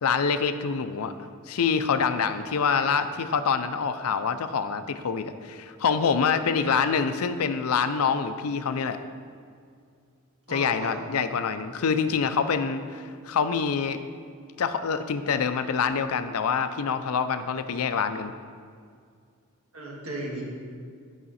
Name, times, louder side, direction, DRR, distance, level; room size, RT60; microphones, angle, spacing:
voice 1, 0.0-1.1 1.5-9.0 10.5-14.0 14.6-18.3, left 6 dB, 85° left, 10 dB, 0.5 m, -26 dB
voice 2, 10.5-11.0 19.7-20.4, right 2 dB, 75° right, -3 dB, 1.8 m, -35 dB
10.5 x 4.9 x 4.2 m, 2.2 s
head